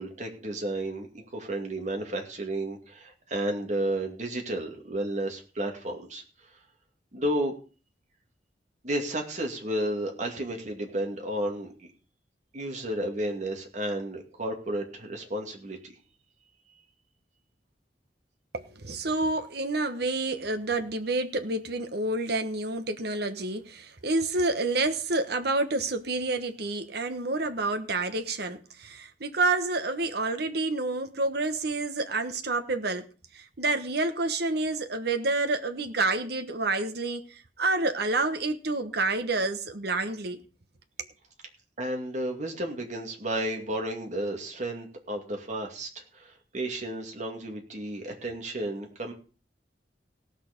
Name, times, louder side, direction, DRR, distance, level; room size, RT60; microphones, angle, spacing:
voice 1, 0.0-6.2 7.1-7.5 8.8-11.7 12.5-15.9 41.8-49.1, right 1 dB, 45° right, 2.4 m, -32 dB
voice 2, 18.5-33.0 33.3-40.4, right 2 dB, 65° right, 1.2 m, -28 dB
17.0 x 6.6 x 5.2 m
head